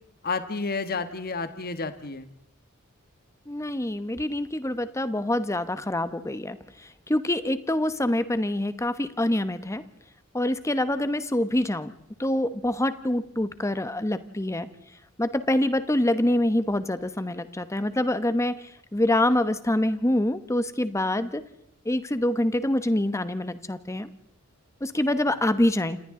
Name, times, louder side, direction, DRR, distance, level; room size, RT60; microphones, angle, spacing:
voice 1, 0.2-2.3, left 4 dB, 45° left, 10 dB, 1.3 m, -30 dB
voice 2, 3.5-6.6 7.1-9.8 10.3-11.9 12.2-14.7 15.2-18.6 18.9-21.4 21.8-24.1 24.8-26.0, left 1 dB, 15° left, 12 dB, 1.0 m, -25 dB
29.5 x 27.0 x 3.8 m, 0.73 s
head